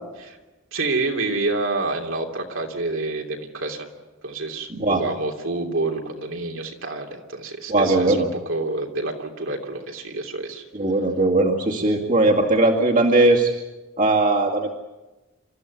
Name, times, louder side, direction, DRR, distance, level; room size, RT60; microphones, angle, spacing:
voice 1, 0.7-3.9 4.2-10.6, right 2 dB, 70° right, 2 dB, 3.0 m, -28 dB
voice 2, 4.7-5.0 7.7-8.3 10.7-13.5 14.0-14.7, right 2 dB, 40° right, 0 dB, 2.2 m, -19 dB
27.5 x 14.0 x 9.5 m, 1.1 s
head